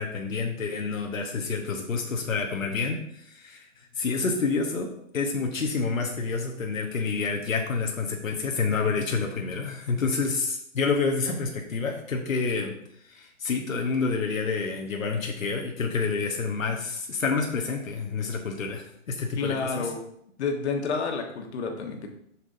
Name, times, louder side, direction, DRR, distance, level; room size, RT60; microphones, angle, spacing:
voice 1, 0.0-3.7 3.9-4.9 5.1-12.7 13.1-19.9, left 4 dB, 85° left, 2 dB, 1.1 m, -28 dB
voice 2, 19.3-20.0 20.4-22.1, left 4 dB, 55° left, 3 dB, 1.3 m, -29 dB
6.8 x 5.9 x 2.6 m, 0.72 s
hypercardioid pair, 130°, 39 cm